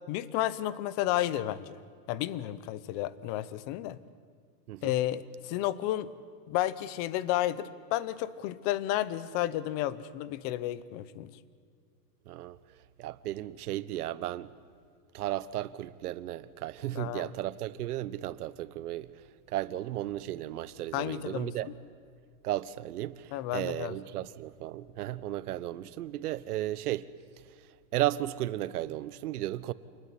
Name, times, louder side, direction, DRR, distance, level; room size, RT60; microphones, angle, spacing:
voice 1, 0.1-1.8 2.1-4.0 4.8-6.1 6.5-11.3 16.9-17.3 20.9-21.7 23.3-24.0, left 14 dB, 25° left, 0.7 m, -32 dB
voice 2, 12.3-12.6 13.0-14.5 15.1-19.1 19.5-21.7 22.4-23.2 23.5-27.1 27.9-29.7, right 14 dB, 75° right, 1.2 m, -34 dB
28.0 x 19.5 x 9.7 m
supercardioid pair, 170°, 46 cm